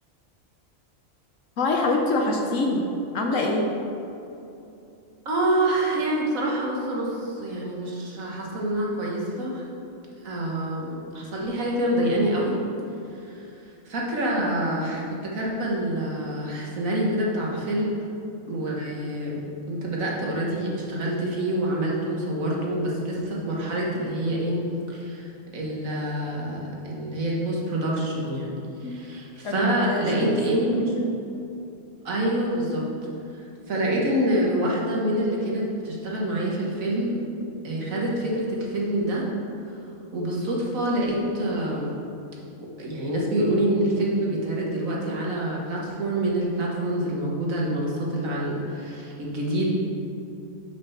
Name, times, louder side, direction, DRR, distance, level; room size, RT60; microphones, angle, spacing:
voice 1, 1.6-2.9 3.1-3.7 28.8-29.1 29.4-30.7 31.0-31.1, left 2 dB, 65° left, 1 dB, 1.3 m, -25 dB
voice 2, 5.3-9.6 10.2-12.6 13.2-13.4 13.9-18.0 18.5-19.4 19.7-24.6 24.9-28.5 28.8-31.0 32.1-32.9 33.7-37.2 37.6-39.2 40.1-41.9 42.8-49.7, right 1 dB, 75° right, -3 dB, 1.8 m, -26 dB
6.6 x 5.1 x 5.8 m, 2.8 s
omnidirectional pair, 1.4 m